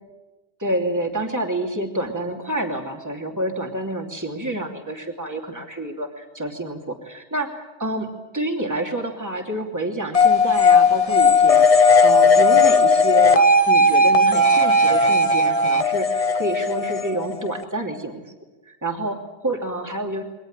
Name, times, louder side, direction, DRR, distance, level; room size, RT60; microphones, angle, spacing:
voice 1, 0.6-8.1 8.3-18.2 18.7-20.2, right 1 dB, 15° right, 2 dB, 2.9 m, -28 dB
sound 1, 10.1-17.6, left 3 dB, 30° left, 1.2 m, -16 dB
23.5 x 19.0 x 9.0 m, 1.1 s
omnidirectional pair, 1.3 m